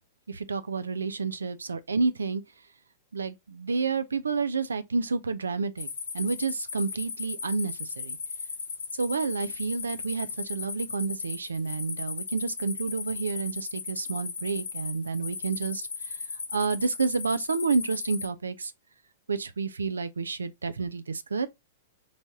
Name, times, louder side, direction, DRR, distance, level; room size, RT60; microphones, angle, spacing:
voice 1, 0.3-2.4 3.1-5.9 6.1-8.2 8.9-16.2 16.5-18.7 19.3-21.5, right 4 dB, 90° right, 0.4 m, -30 dB
sound 1, 5.8-18.3, left 5 dB, 80° left, 1.0 m, -37 dB
3.3 x 2.6 x 3.4 m
hypercardioid pair, 115°, 0 cm